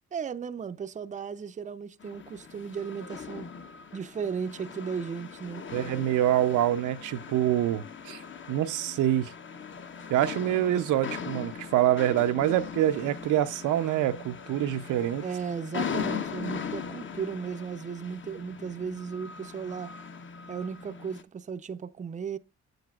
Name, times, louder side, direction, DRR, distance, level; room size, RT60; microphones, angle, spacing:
voice 1, 0.1-3.5 3.9-5.6 15.2-19.9 20.5-22.4, right 6 dB, 25° right, 0.5 m, -35 dB
sound 1, 2.0-21.2, left 6 dB, 40° left, 1.0 m, -40 dB
voice 2, 5.7-8.2 8.5-9.3 10.1-15.2, right 12 dB, 85° right, 0.6 m, -26 dB
8.5 x 7.9 x 2.4 m
cardioid pair, 90°, 30 cm